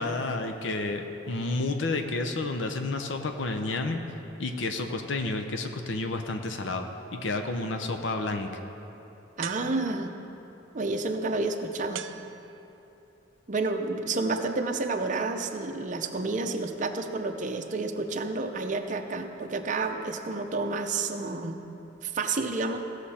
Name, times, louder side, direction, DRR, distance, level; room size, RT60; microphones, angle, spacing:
voice 1, 0.0-4.0 4.4-6.9 7.1-8.5, left 2 dB, 75° left, 5 dB, 0.7 m, -30 dB
voice 2, 9.4-10.1 10.7-12.0 13.5-21.6 22.0-22.8, right 3 dB, 40° right, 5 dB, 0.6 m, -30 dB
sound 1, 9.4-10.3 11.9-12.9, right 9 dB, 85° right, 0.4 m, -41 dB
17.0 x 6.5 x 4.3 m, 2.9 s
head